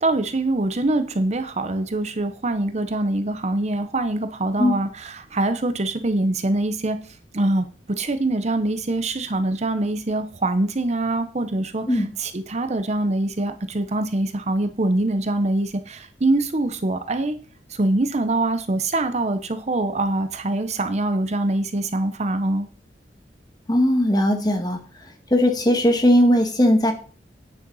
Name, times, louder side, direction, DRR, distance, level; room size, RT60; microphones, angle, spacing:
voice 1, 0.0-7.0 7.3-17.4 17.7-22.7, right 2 dB, 40° right, 9 dB, 0.8 m, -24 dB
voice 2, 23.7-24.8 25.3-26.9, equal, 25° left, 4 dB, 1.8 m, -18 dB
9.5 x 6.6 x 5.5 m, 0.40 s
head